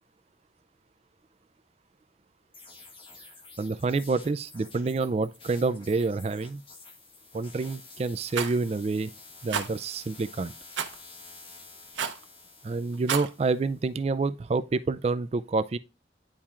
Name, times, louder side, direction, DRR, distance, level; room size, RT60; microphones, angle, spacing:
sound 1, 2.5-13.9, left 3 dB, 30° left, 1.3 m, -50 dB
voice 1, 3.6-6.6 7.3-9.1 9.4-10.5 12.6-15.8, right 3 dB, 35° right, 0.3 m, -28 dB
Rattle, 8.3-8.6 9.5-9.7 10.8-11.0 12.0-12.2 12.9-13.3, right 7 dB, 85° right, 0.8 m, -30 dB
10.0 x 4.3 x 2.4 m
head